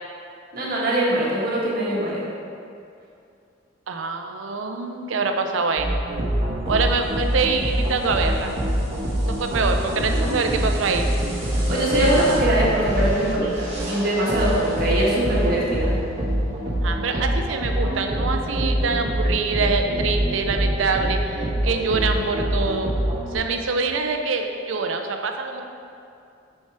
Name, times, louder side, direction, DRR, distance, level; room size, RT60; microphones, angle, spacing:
voice 1, 0.5-2.2 10.1-10.4 11.7-15.9, right 1 dB, 50° right, -6 dB, 1.5 m, -22 dB
voice 2, 3.9-5.9 6.7-8.5 9.3-11.1 16.8-22.9 23.3-25.6, right 4 dB, 85° right, 5 dB, 0.5 m, -25 dB
sound 1, 5.8-23.3, right 1 dB, 35° right, 1.3 m, -25 dB
5.6 x 4.6 x 4.7 m, 2.5 s
head